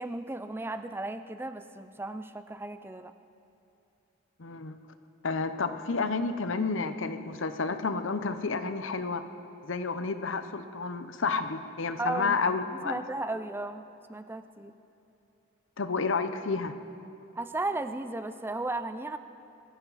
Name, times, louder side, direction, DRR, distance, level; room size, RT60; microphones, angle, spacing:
voice 1, 0.0-3.1 12.0-12.4 12.7-14.7 17.4-19.2, right 2 dB, 10° right, 10 dB, 0.4 m, -35 dB
voice 2, 4.4-4.8 5.2-9.2 9.6-13.0 15.8-16.7, left 4 dB, 70° left, 10 dB, 0.8 m, -30 dB
22.0 x 14.5 x 4.1 m, 2.7 s
head